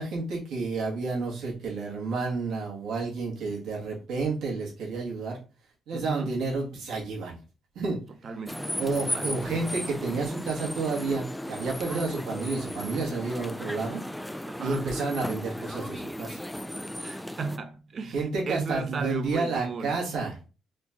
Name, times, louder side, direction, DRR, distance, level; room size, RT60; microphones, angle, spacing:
voice 1, 0.0-5.4 5.9-7.4 7.8-8.0 8.8-14.0 14.6-16.4 18.1-20.4, right 3 dB, 85° right, 1.9 m, -30 dB
voice 2, 5.9-6.4 8.2-9.6 14.5-14.9 17.0-20.0, right 5 dB, 50° right, 0.8 m, -36 dB
sound 1, 8.5-17.6, left 1 dB, 5° left, 0.3 m, -35 dB
4.3 x 2.9 x 3.6 m
cardioid pair, 90°, 0 cm